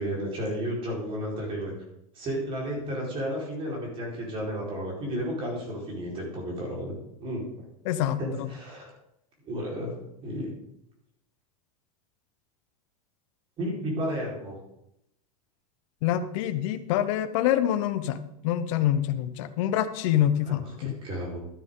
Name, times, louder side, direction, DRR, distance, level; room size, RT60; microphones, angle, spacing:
voice 1, 0.0-1.7 2.1-6.9 7.2-7.5 8.2-8.9 9.4-10.0 10.2-10.5 13.6-14.6 20.5-21.4, equal, 30° right, -3 dB, 4.5 m, -32 dB
voice 2, 7.8-8.5 16.0-18.2 18.4-21.0, left 11 dB, 60° left, 10 dB, 0.9 m, -26 dB
12.5 x 9.7 x 3.8 m, 0.81 s
supercardioid pair, 150°, 19 cm